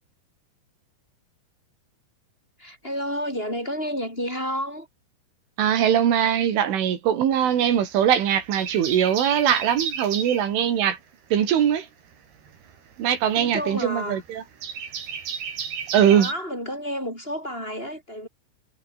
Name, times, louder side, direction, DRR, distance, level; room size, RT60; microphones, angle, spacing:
voice 1, 2.6-4.9 13.3-14.2 16.1-18.3, equal, 10° left, 7.1 m, -30 dB
voice 2, 5.6-11.0 11.3-11.9 13.0-14.4 15.9-16.3, right 9 dB, 90° right, 5.6 m, -21 dB
sound 1, 7.3-8.0 8.3-10.5 12.1-16.3, right 7 dB, 60° right, 5.7 m, -33 dB
omnidirectional pair, 5.4 m